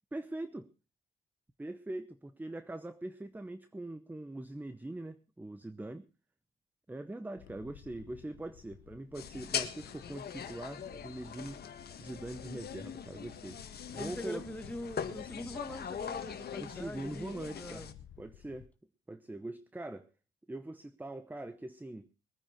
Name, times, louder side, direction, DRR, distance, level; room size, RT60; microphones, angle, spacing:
voice 1, 0.1-0.7 1.6-6.1 6.9-11.6 12.0-13.6 13.9-14.4 16.6-17.9 18.2-18.7 19.1-20.1 20.5-22.1, right 2 dB, 10° right, 13 dB, 0.8 m, -42 dB
Wind, 7.4-18.7, left 10 dB, 85° left, 1.0 m, -54 dB
sound 1, 9.1-17.9, left 7 dB, 55° left, 1.7 m, -42 dB
voice 2, 13.9-17.9, left 1 dB, 5° left, 7 dB, 2.1 m, -43 dB
21.5 x 9.7 x 4.5 m, 0.33 s
cardioid pair, 90°, 20 cm